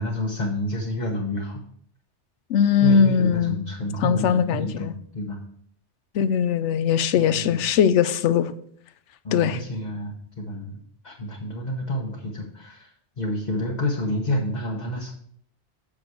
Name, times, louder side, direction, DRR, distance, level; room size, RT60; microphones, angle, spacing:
voice 1, 0.0-1.6 2.8-5.4 7.1-7.6 9.2-12.9 13.2-15.1, left 1 dB, 40° left, -1 dB, 1.2 m, -29 dB
voice 2, 2.5-3.6 4.0-4.9 6.1-8.5 9.3-9.6, left 7 dB, 85° left, 14 dB, 0.9 m, -20 dB
8.7 x 6.1 x 4.6 m, 0.64 s
omnidirectional pair, 1.2 m